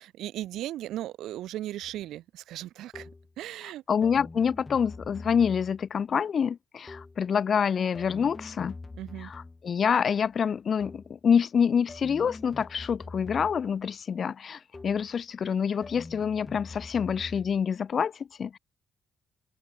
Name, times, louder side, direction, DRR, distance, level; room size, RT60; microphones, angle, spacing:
voice 1, 0.0-3.1 3.4-3.8 9.0-9.3, right 14 dB, 85° right, 1.0 m, -37 dB
sound 1, 1.8-2.0 2.9-3.3 4.0-5.9 6.9-7.3 7.9-9.7 10.8-11.2 11.9-13.8 14.7-15.2 15.8-17.6, left 3 dB, 20° left, 2.7 m, -44 dB
voice 2, 3.9-8.8 9.2-18.6, left 7 dB, 50° left, 0.8 m, -27 dB
open air
cardioid pair, 90°, 0 cm